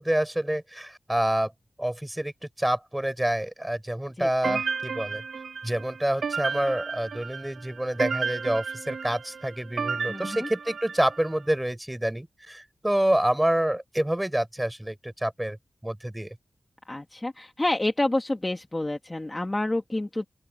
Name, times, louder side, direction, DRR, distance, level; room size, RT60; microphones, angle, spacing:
voice 1, 0.0-1.5 1.8-2.3 2.6-5.2 5.6-15.6 15.8-16.4, right 1 dB, 10° right, 7.0 m, -27 dB
voice 2, 4.2-4.6 10.1-10.5 16.9-20.3, left 2 dB, 20° left, 2.0 m, -29 dB
sound 1, 4.4-11.4, right 5 dB, 85° right, 1.8 m, -33 dB
open air
wide cardioid pair, 120°, 0 cm